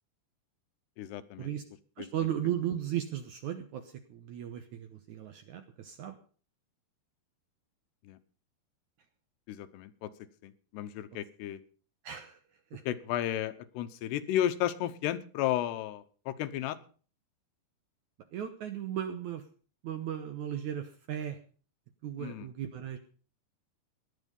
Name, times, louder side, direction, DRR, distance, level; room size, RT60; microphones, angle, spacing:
voice 1, 1.0-1.5 2.0-2.1 8.0-8.2 9.5-10.1 10.4-11.6 12.8-16.8 22.2-22.5, left 12 dB, 85° left, 13 dB, 3.1 m, -33 dB
voice 2, 2.0-6.2 12.0-12.8 18.3-19.5 19.8-21.4 22.0-23.0, right 10 dB, 70° right, 9 dB, 1.9 m, -36 dB
17.5 x 11.0 x 5.4 m, 0.40 s
omnidirectional pair, 4.7 m